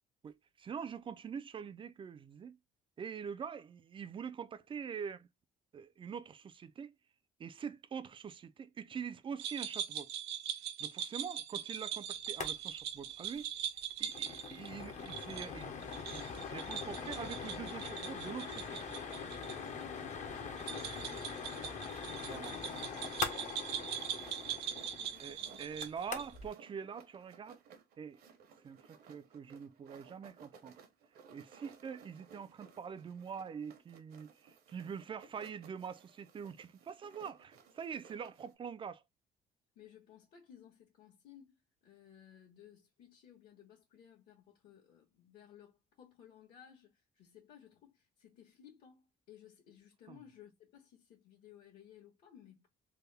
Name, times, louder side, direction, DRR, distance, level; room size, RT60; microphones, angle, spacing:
voice 1, 0.2-2.6 3.0-5.3 5.7-6.9 7.4-10.1 10.8-13.5 14.0-18.8 22.3-22.6 24.4-24.6 25.2-27.6 28.0-28.2 28.6-30.8 31.3-39.0, right 7 dB, 30° right, 0.4 m, -44 dB
sound 1, 9.4-19.6 19.8-19.9 20.6-26.3, right 9 dB, 90° right, 0.7 m, -41 dB
sound 2, 12.3-12.5 12.8-12.9 13.2-13.4 13.8-26.5, left 5 dB, 45° left, 0.8 m, -43 dB
voice 2, 18.9-22.2 23.5-25.6 39.7-41.6 41.8-52.7, left 9 dB, 65° left, 1.4 m, -59 dB
sound 3, 20.3-38.5, right 6 dB, 65° right, 1.0 m, -60 dB
3.4 x 2.1 x 3.3 m
cardioid pair, 110°, 17 cm